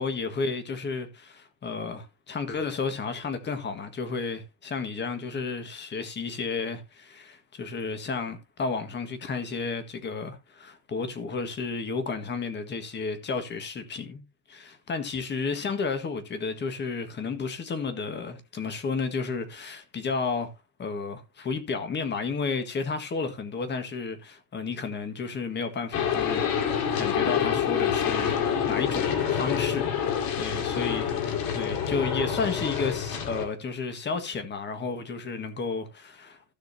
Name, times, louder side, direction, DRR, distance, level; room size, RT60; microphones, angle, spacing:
voice 1, 0.0-20.5 20.8-28.4 28.7-36.5, left 4 dB, 20° left, 1.7 m, -32 dB
sound 1, 25.9-33.5, left 8 dB, 45° left, 2.5 m, -27 dB
15.5 x 6.3 x 2.8 m
supercardioid pair, 145°, 48 cm